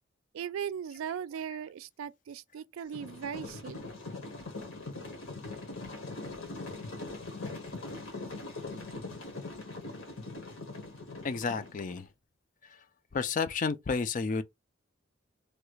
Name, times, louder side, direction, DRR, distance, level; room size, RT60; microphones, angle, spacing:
voice 1, 0.3-3.8, right 8 dB, 85° right, 0.3 m, -38 dB
sound 1, 2.9-12.0, left 2 dB, 80° left, 1.3 m, -41 dB
voice 2, 11.2-12.1 13.1-14.4, left 4 dB, 40° left, 0.4 m, -31 dB
3.1 x 2.4 x 3.0 m
head